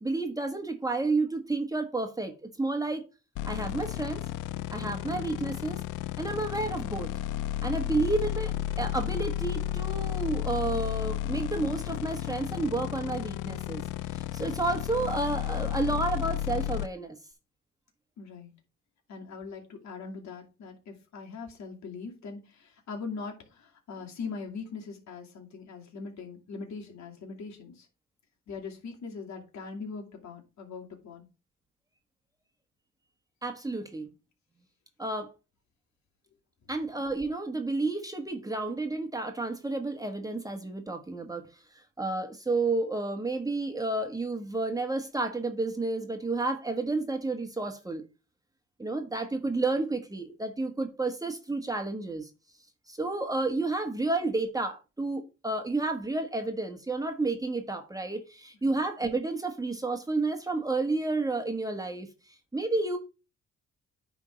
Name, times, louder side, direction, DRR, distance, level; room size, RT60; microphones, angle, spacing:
voice 1, 0.0-3.0 3.4-4.2 4.7-5.8 6.2-7.1 7.6-13.8 14.1-17.2 33.4-34.1 35.0-35.3 36.7-41.5 41.7-48.0 48.8-52.3 52.9-63.0, right 3 dB, 10° right, 1.4 m, -31 dB
sound 1, 3.4-16.9, left 12 dB, 90° left, 0.5 m, -33 dB
voice 2, 18.2-18.5 19.1-27.9 28.5-31.3 58.6-58.8, left 4 dB, 65° left, 2.5 m, -41 dB
9.7 x 3.7 x 5.1 m
cardioid pair, 90°, 30 cm